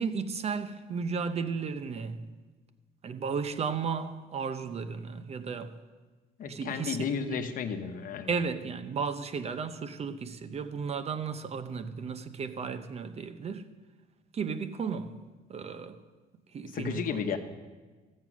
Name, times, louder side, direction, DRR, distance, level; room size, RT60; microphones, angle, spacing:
voice 1, 0.0-2.3 3.0-5.8 6.4-7.4 8.3-13.7 14.3-15.1 15.5-16.0 16.5-17.2, right 5 dB, 40° right, 0.7 m, -34 dB
voice 2, 6.4-8.4 16.7-17.4, left 6 dB, 55° left, 1.0 m, -33 dB
15.5 x 7.5 x 6.1 m
cardioid pair, 110°, 17 cm